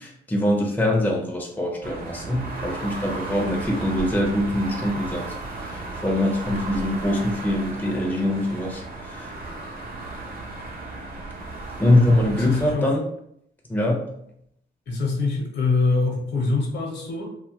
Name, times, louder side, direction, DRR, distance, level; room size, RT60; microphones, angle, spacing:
voice 1, 0.0-5.2 5.6-9.3 11.8-13.0 13.7-14.1, left 1 dB, 10° left, 0 dB, 0.6 m, -23 dB
sound 1, 1.8-12.8, right 2 dB, 50° right, 0.8 m, -35 dB
voice 2, 11.9-12.9 14.9-17.2, left 3 dB, 60° left, 0 dB, 0.9 m, -24 dB
2.7 x 2.3 x 2.8 m, 0.74 s
cardioid pair, 90°, 20 cm